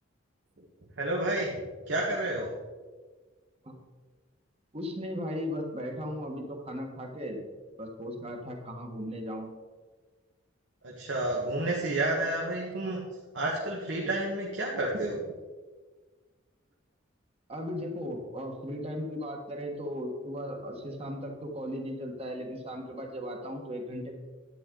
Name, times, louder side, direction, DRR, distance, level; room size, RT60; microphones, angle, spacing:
voice 1, 1.0-2.5 10.8-13.0 13.3-15.2, right 1 dB, 65° right, -3 dB, 1.4 m, -30 dB
voice 2, 4.7-7.4 7.8-9.5 17.5-24.1, equal, 30° right, 2 dB, 1.5 m, -36 dB
11.0 x 8.8 x 3.8 m, 1.4 s
head